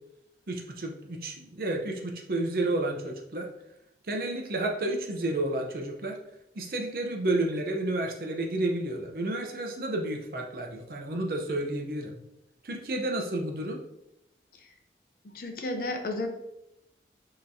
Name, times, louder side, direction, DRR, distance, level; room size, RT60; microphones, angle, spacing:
voice 1, 0.5-3.5 4.1-6.2 6.6-12.2 12.6-13.8, right 2 dB, 55° right, 1 dB, 0.7 m, -31 dB
voice 2, 15.2-16.3, left 2 dB, 55° left, 4 dB, 0.6 m, -32 dB
5.5 x 3.0 x 2.7 m, 0.86 s
head